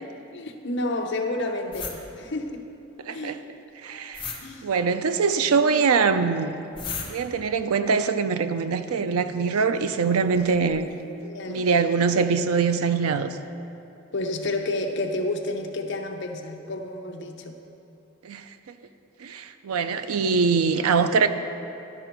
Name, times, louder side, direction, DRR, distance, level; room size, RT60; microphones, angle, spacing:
voice 1, 0.3-2.7 3.1-3.4 4.4-4.7 11.2-11.7 14.1-17.6, left 2 dB, 55° left, 4 dB, 0.7 m, -30 dB
sound 1, 1.7-1.9 4.1-4.4 6.7-7.1 10.1-10.9 11.6-11.7 12.3-12.4, left 6 dB, 20° left, 0.9 m, -34 dB
voice 2, 3.1-3.4 3.8-4.3 4.6-6.6 7.0-10.9 11.5-13.4 18.2-18.4 19.2-21.3, right 5 dB, 85° right, 10 dB, 0.5 m, -23 dB
12.0 x 5.9 x 4.5 m, 2.8 s
head